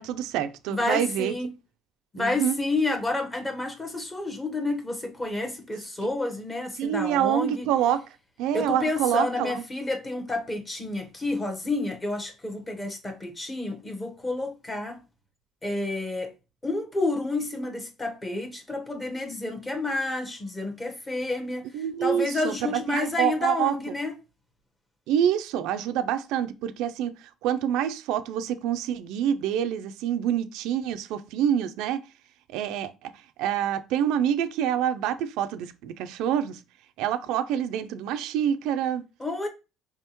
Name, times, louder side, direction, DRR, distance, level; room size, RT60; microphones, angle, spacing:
voice 1, 0.0-1.3 2.2-2.5 6.8-8.0 8.4-9.6 21.7-22.5 22.9-23.7 25.1-27.1 27.4-32.0 32.5-33.1 33.4-36.6 37.0-39.0, right 10 dB, 75° right, 0.4 m, -26 dB
voice 2, 0.7-1.5 2.1-7.6 8.5-15.0 15.6-16.3 16.6-24.1 39.2-39.5, left 2 dB, 15° left, 1.0 m, -30 dB
4.7 x 3.4 x 2.9 m
cardioid pair, 125°, 0 cm